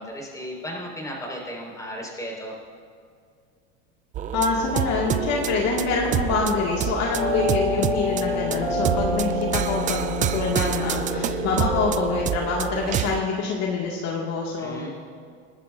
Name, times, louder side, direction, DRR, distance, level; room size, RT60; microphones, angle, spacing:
voice 1, 0.0-2.5 14.6-14.9, equal, 10° left, -2 dB, 4.5 m, -35 dB
sound 1, 4.1-13.2, right 10 dB, 25° right, 0.3 m, -28 dB
voice 2, 4.3-14.9, left 4 dB, 50° left, -2 dB, 1.9 m, -26 dB
sound 2, 7.1-12.3, left 2 dB, 80° left, 3.4 m, -27 dB
28.0 x 12.0 x 2.5 m, 2.2 s
supercardioid pair, 120°, 35 cm